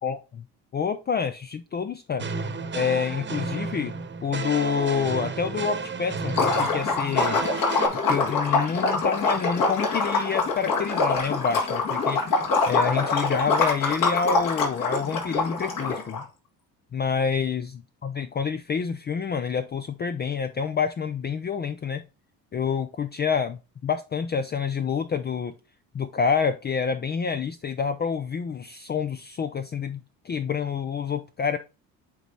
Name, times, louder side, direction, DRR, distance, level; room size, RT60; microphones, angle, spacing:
voice 1, 0.0-0.4 0.7-2.3 2.7-3.9 4.2-7.4 8.1-12.2 12.7-16.3 16.9-22.0 22.5-25.5 25.9-31.6, left 6 dB, 30° left, 0.5 m, -28 dB
sound 1, 2.2-7.9, right 4 dB, 30° right, 1.1 m, -32 dB
Liquid, 6.3-16.2, left 3 dB, 60° left, 2.5 m, -24 dB
8.5 x 3.1 x 4.0 m
cardioid pair, 90°, 36 cm